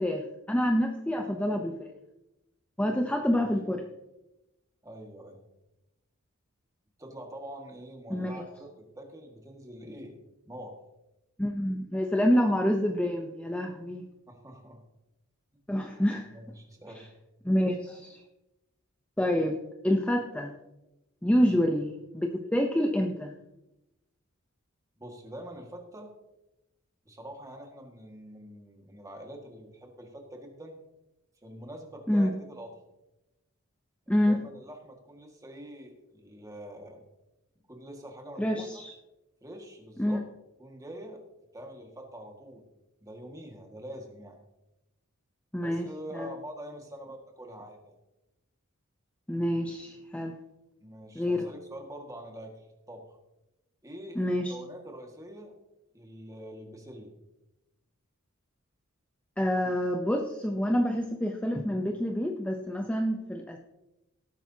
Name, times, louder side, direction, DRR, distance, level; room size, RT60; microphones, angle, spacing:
voice 1, 0.0-1.9 2.8-3.8 8.1-8.4 11.4-14.0 15.7-16.3 17.4-18.2 19.2-19.6 19.8-20.5 21.2-23.3 32.1-32.3 34.1-34.4 38.4-38.9 40.0-40.2 45.5-45.9 46.1-46.3 49.3-50.3 51.2-51.5 54.2-54.5 59.4-63.6, equal, 5° left, 2 dB, 0.7 m, -27 dB
voice 2, 4.8-5.5 7.0-10.2 10.5-10.7 14.3-14.8 16.3-17.1 21.4-21.6 25.0-26.1 27.1-30.8 31.4-32.7 34.1-37.0 37.7-38.7 39.4-40.2 40.6-41.2 41.5-42.7 43.0-44.4 45.6-47.9 50.8-53.2 53.8-55.5 55.9-57.1, right 1 dB, 15° right, 2 dB, 1.8 m, -45 dB
18.0 x 8.9 x 2.8 m, 0.95 s
head